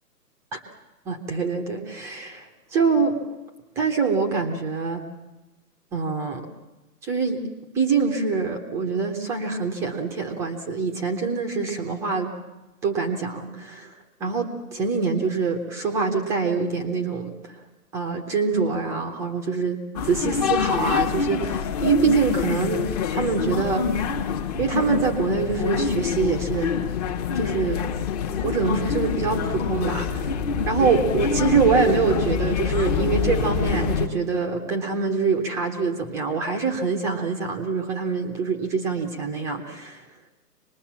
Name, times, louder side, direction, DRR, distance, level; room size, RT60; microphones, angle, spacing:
voice 1, 1.1-3.2 3.8-5.0 5.9-6.4 7.0-7.4 7.7-12.3 12.8-13.9 14.2-17.5 17.9-22.8 23.1-23.9 24.6-26.7 27.3-27.8 28.4-30.3 30.7-40.0, right 5 dB, 5° right, 3 dB, 0.8 m, -25 dB
sound 1, 20.0-34.1, left 6 dB, 25° left, 1.2 m, -26 dB
25.5 x 20.5 x 7.3 m, 1.1 s
hypercardioid pair, 150°, 48 cm